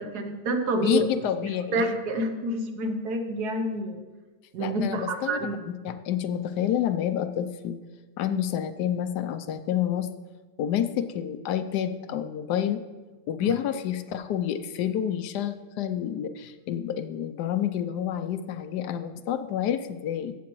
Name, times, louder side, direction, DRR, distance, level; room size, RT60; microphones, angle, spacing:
voice 1, 0.0-1.1 1.7-4.0 4.5-5.6 13.4-13.5, right 1 dB, 75° right, 6 dB, 1.5 m, -28 dB
voice 2, 0.8-1.9 4.6-5.4 5.7-7.8 8.2-10.1 10.6-12.8 13.3-20.3, left 10 dB, 85° left, 10 dB, 1.2 m, -29 dB
14.0 x 8.4 x 3.1 m, 1.3 s
omnidirectional pair, 1.7 m